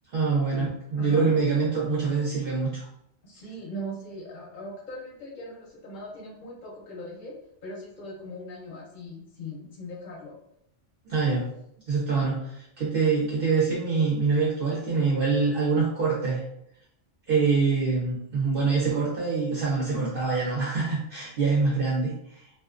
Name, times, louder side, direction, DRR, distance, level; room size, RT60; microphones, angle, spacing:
voice 1, 0.1-2.9 11.1-11.4 11.9-16.4 17.3-22.1, right 4 dB, 60° right, -6 dB, 0.7 m, -25 dB
voice 2, 1.0-1.3 3.2-7.3 7.6-10.4, left 1 dB, 50° left, -4 dB, 0.7 m, -39 dB
2.4 x 2.2 x 2.4 m, 0.76 s
omnidirectional pair, 1.2 m